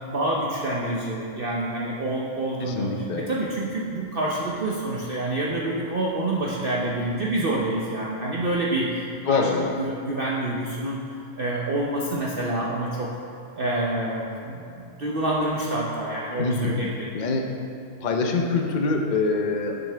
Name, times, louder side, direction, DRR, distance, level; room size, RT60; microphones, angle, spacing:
voice 1, 0.1-11.0 11.4-13.1 13.6-17.1, right 1 dB, 50° right, -4 dB, 0.7 m, -27 dB
voice 2, 2.6-3.2 9.3-9.7 16.4-16.8 17.1-17.5 18.0-19.8, left 3 dB, 80° left, 3 dB, 0.4 m, -24 dB
10.0 x 6.5 x 3.3 m, 2.5 s
omnidirectional pair, 1.6 m